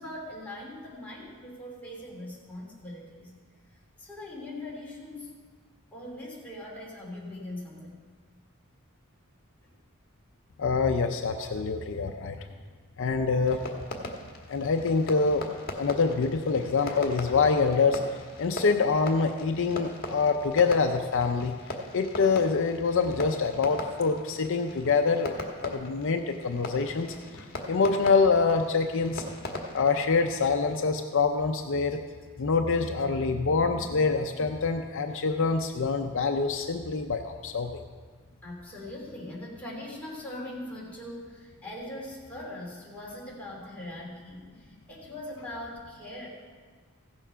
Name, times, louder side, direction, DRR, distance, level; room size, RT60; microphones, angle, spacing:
voice 1, 0.0-3.3 4.0-5.3 5.9-8.0 38.4-46.3, left 1 dB, 5° left, -5 dB, 2.8 m, -41 dB
voice 2, 10.6-12.5 13.0-13.7 14.5-15.4 15.8-18.0 18.4-21.5 21.9-29.2 29.7-32.0 32.4-37.8, left 4 dB, 60° left, 5 dB, 0.6 m, -25 dB
Fireworks, 13.4-29.9, left 1 dB, 45° left, 1.4 m, -40 dB
15.5 x 7.0 x 5.6 m, 1.5 s
head